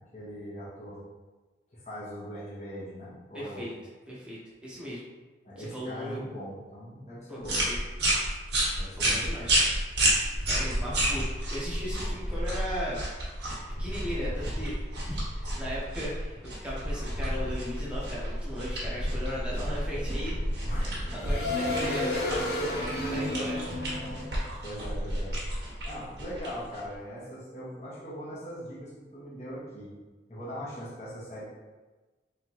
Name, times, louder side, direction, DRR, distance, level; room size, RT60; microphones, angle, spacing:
voice 1, 0.1-1.0 1.7-3.7 5.4-7.7 8.8-9.3 20.6-21.1 23.1-23.5 24.6-25.3 25.8-29.9 30.3-31.4, equal, 40° left, -8 dB, 1.3 m, -40 dB
voice 2, 3.3-3.7 4.1-5.1 5.6-6.2 7.3-7.8 9.0-9.7 10.4-13.0 13.8-14.7 15.0-20.4 20.7-22.6 22.9-23.6, equal, 5° right, -7 dB, 1.0 m, -37 dB
sound 1, 7.4-27.0, right 1 dB, 75° right, 1.4 m, -32 dB
sound 2, 10.3-12.6 13.7-16.3 16.8-25.6, left 1 dB, 65° left, 0.8 m, -33 dB
3.6 x 3.6 x 3.0 m, 1.2 s
head